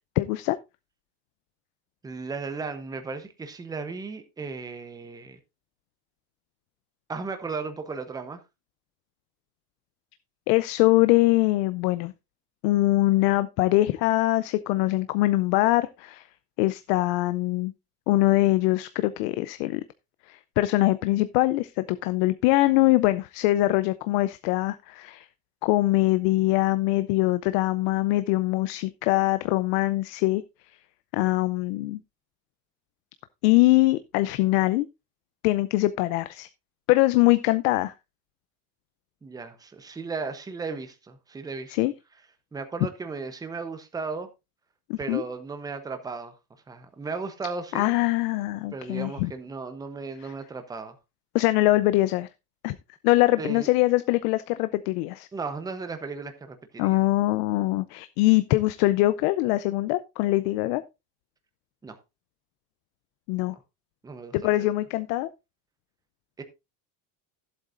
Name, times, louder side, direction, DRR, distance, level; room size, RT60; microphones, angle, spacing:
voice 1, 0.2-0.6 10.5-12.1 12.6-16.3 16.6-17.7 18.1-19.8 20.3-25.3 25.6-30.4 30.7-30.8 31.1-32.0 33.4-34.9 35.4-36.5 36.9-37.9 41.7-41.9 44.9-45.2 47.7-49.3 50.2-50.3 51.3-52.3 52.6-52.8 53.0-55.3 56.8-60.8 63.3-63.6 64.3-65.3, left 18 dB, 90° left, 0.7 m, -23 dB
voice 2, 2.0-5.4 7.1-8.4 39.2-41.8 42.5-44.3 45.0-46.3 46.7-47.9 48.7-51.0 53.4-53.7 55.3-57.0 61.8-62.0 64.0-64.7 66.4-66.5, right 4 dB, 10° right, 0.8 m, -35 dB
14.0 x 8.0 x 2.5 m
cardioid pair, 170°, 45 cm